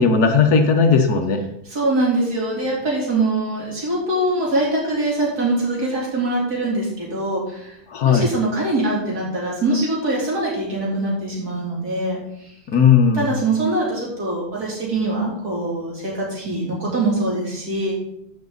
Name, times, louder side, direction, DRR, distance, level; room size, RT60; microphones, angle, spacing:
voice 1, 0.0-1.4 7.9-8.3 12.7-13.4, left 5 dB, 80° left, 5 dB, 1.7 m, -16 dB
voice 2, 1.7-7.8 8.0-12.5 13.1-17.9, right 2 dB, 85° right, -5 dB, 4.0 m, -23 dB
14.5 x 6.0 x 4.0 m, 0.76 s
omnidirectional pair, 1.6 m